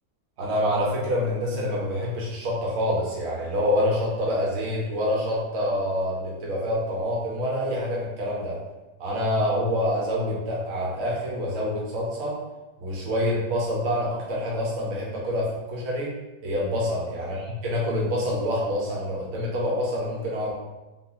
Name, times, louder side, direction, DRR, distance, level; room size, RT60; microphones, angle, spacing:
voice 1, 0.4-8.6 9.0-12.3 12.8-16.1 16.4-17.4 17.6-20.5, equal, 50° right, -4 dB, 1.0 m, -26 dB
3.9 x 2.2 x 2.7 m, 1.1 s
omnidirectional pair, 1.8 m